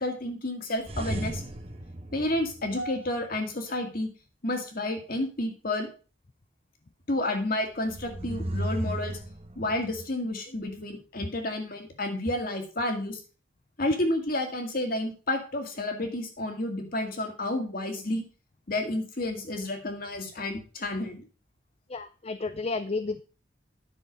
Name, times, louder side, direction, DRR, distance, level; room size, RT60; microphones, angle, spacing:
voice 1, 0.0-1.4 2.1-4.1 4.4-5.9 7.1-9.2 9.6-13.2 13.8-18.2 18.7-21.3, left 1 dB, 50° left, 4 dB, 2.1 m, -30 dB
sound 1, 0.8-3.2 7.8-10.1, right 1 dB, 30° right, 1.0 m, -35 dB
voice 2, 21.9-23.2, left 3 dB, 30° left, 11 dB, 0.4 m, -32 dB
10.0 x 6.4 x 5.2 m, 0.36 s
head